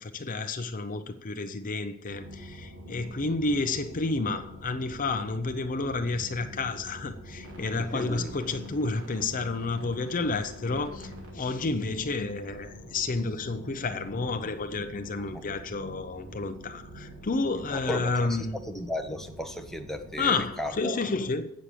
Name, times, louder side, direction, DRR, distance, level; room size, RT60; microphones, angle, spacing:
voice 1, 0.0-18.6 20.2-21.5, left 3 dB, 40° left, 0.6 m, -30 dB
sound 1, 2.1-20.7, equal, 90° right, 2.7 m, -45 dB
voice 2, 7.8-8.3 15.3-15.4 17.7-18.4 18.7-20.9, left 1 dB, ahead, 0.8 m, -35 dB
8.7 x 6.4 x 6.7 m
head